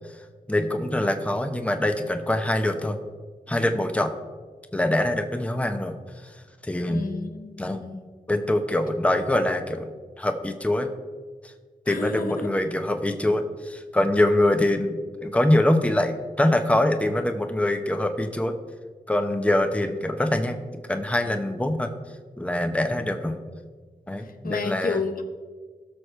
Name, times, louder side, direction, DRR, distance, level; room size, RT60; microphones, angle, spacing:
voice 1, 0.5-3.0 3.5-4.1 4.7-6.0 6.6-7.1 7.6-7.8 8.3-10.9 11.9-18.5 19.1-20.6 20.9-21.9 22.4-23.4 24.1-25.0, left 1 dB, 10° left, 6 dB, 0.9 m, -24 dB
voice 2, 6.9-8.0 11.9-12.5 24.2-25.2, left 4 dB, 65° left, 6 dB, 0.9 m, -31 dB
17.0 x 6.3 x 3.3 m, 1.5 s
cardioid pair, 55°, 16 cm